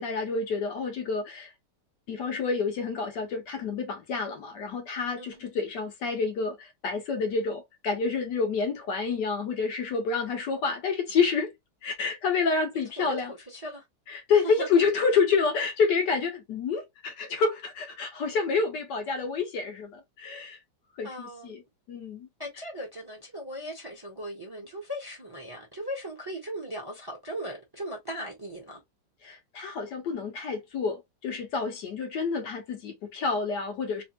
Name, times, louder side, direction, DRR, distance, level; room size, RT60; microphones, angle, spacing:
voice 1, 0.0-1.5 2.1-11.5 11.8-13.3 14.1-20.6 21.0-21.6 21.9-22.3 29.2-34.0, left 5 dB, 75° left, 1.4 m, -28 dB
voice 2, 13.0-13.9 14.4-14.7 21.0-21.5 22.4-28.8, equal, 15° right, 0.9 m, -38 dB
3.4 x 2.5 x 2.9 m
omnidirectional pair, 2.0 m